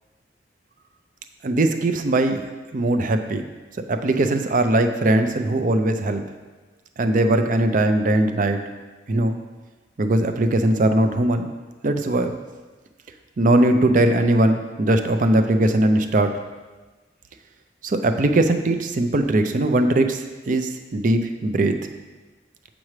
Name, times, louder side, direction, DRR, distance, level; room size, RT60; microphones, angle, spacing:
voice 1, 1.4-2.4 2.7-3.4 3.9-6.2 7.0-8.6 9.1-9.4 10.0-11.5 11.8-12.4 13.4-16.3 17.8-21.8, right 1 dB, 45° right, 7 dB, 0.5 m, -20 dB
7.4 x 6.0 x 3.2 m, 1.3 s
head